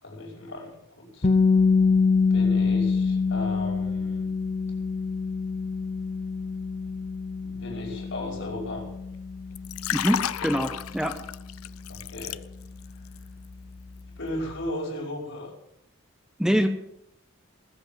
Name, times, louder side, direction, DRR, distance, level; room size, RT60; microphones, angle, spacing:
voice 1, 0.0-1.3 2.3-4.3 7.4-8.9 11.9-12.4 14.2-15.5, left 1 dB, 65° left, -1 dB, 5.7 m, -36 dB
sound 1, 1.2-13.1, left 4 dB, 30° left, 0.5 m, -26 dB
Liquid, 9.5-12.9 13.2-13.5, left 10 dB, 85° left, 0.5 m, -32 dB
voice 2, 9.9-11.2 16.4-16.7, equal, 5° right, 6 dB, 0.8 m, -24 dB
19.5 x 8.0 x 7.4 m, 0.80 s
head